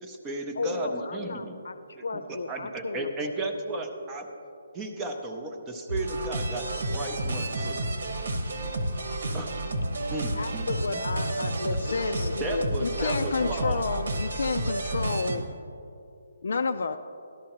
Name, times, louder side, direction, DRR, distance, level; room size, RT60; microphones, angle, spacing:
voice 1, 0.0-1.6 2.0-2.1 2.3-4.3 4.7-7.8 9.3-9.6 10.1-11.0 12.4-13.8, right 2 dB, 10° right, 3 dB, 0.5 m, -34 dB
voice 2, 0.6-3.3 10.4-12.7 13.0-13.5, left 3 dB, 90° left, 11 dB, 0.7 m, -34 dB
sound 1, 5.9-15.4, right 1 dB, 70° right, 1.2 m, -31 dB
voice 3, 11.8-15.5 16.4-17.0, left 4 dB, 60° left, 7 dB, 0.4 m, -30 dB
12.5 x 12.5 x 2.9 m, 2.7 s
hypercardioid pair, 175°, 0 cm